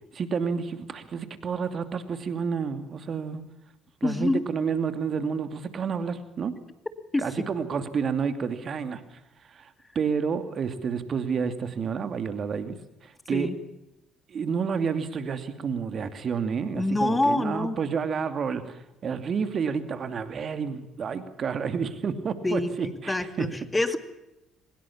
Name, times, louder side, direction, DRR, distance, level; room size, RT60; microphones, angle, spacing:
voice 1, 0.1-3.4 4.0-6.5 7.2-9.0 9.5-9.7 9.9-12.8 13.0-13.5 14.3-23.5, right 6 dB, 50° right, 10 dB, 2.6 m, -30 dB
voice 2, 4.0-4.4 7.1-7.5 13.3-13.6 16.8-17.8 22.4-24.0, left 2 dB, 15° left, 10 dB, 2.4 m, -26 dB
23.5 x 21.0 x 7.3 m, 0.90 s
hypercardioid pair, 55°, 0 cm